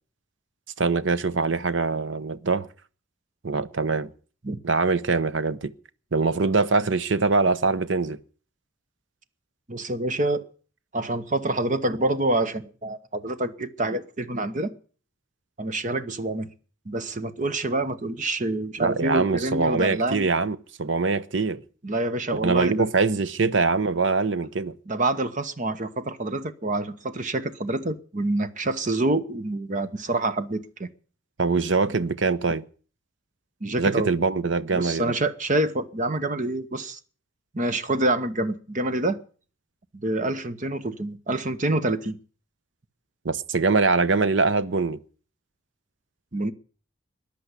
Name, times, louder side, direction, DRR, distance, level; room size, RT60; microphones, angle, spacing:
voice 1, 0.8-2.7 3.4-4.1 4.6-5.7 6.1-8.2 18.8-21.6 22.3-24.7 31.4-32.6 33.8-35.1 43.2-45.0, right 4 dB, 65° right, 0.7 m, -23 dB
voice 2, 9.7-10.5 10.9-14.7 15.6-16.5 16.9-20.3 21.8-22.8 24.9-30.9 33.6-34.1 34.7-37.0 37.5-39.2 39.9-42.2 46.3-46.5, right 2 dB, 40° right, 1.0 m, -27 dB
14.0 x 10.0 x 8.1 m
head